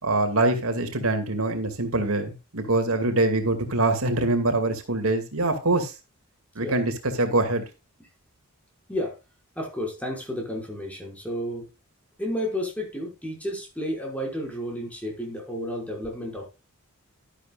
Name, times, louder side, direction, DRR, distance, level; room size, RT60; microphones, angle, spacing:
voice 1, 0.0-5.9 6.6-6.9 7.2-7.6, right 2 dB, 70° right, 2.4 m, -24 dB
voice 2, 9.6-11.7 12.2-16.5, equal, 5° left, 5.4 m, -31 dB
12.0 x 11.5 x 2.4 m
head